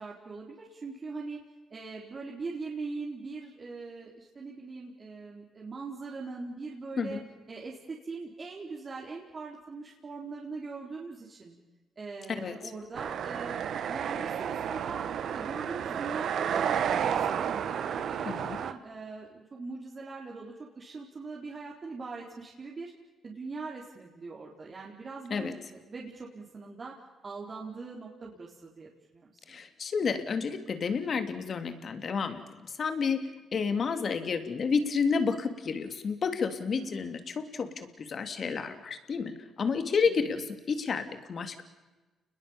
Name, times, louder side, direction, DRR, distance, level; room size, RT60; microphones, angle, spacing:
voice 1, 0.0-1.4 1.7-7.2 7.5-11.6 12.0-15.0 15.3-22.9 23.2-29.6 36.7-37.2 40.0-40.4, right 4 dB, 35° right, -3 dB, 4.3 m, -41 dB
sound 1, 12.9-18.7, right 8 dB, 65° right, 1.5 m, -31 dB
voice 2, 18.3-18.6 25.3-25.5 29.5-33.2 33.5-41.6, left 5 dB, 50° left, 8 dB, 3.1 m, -30 dB
30.0 x 21.0 x 7.4 m, 1.2 s
cardioid pair, 90°, 0 cm